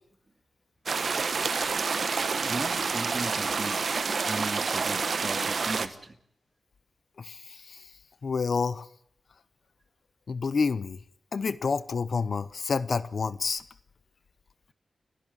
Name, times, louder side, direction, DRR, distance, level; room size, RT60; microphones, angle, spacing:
sound 1, 0.9-5.9, right 5 dB, 65° right, 1.2 m, -28 dB
voice 1, 2.4-3.8 4.3-6.1, right 2 dB, 35° right, 2.5 m, -37 dB
voice 2, 7.2-7.8 8.2-8.9 10.3-11.0 11.3-13.6, left 5 dB, 65° left, 0.8 m, -29 dB
29.5 x 12.0 x 8.6 m
cardioid pair, 70°, 0 cm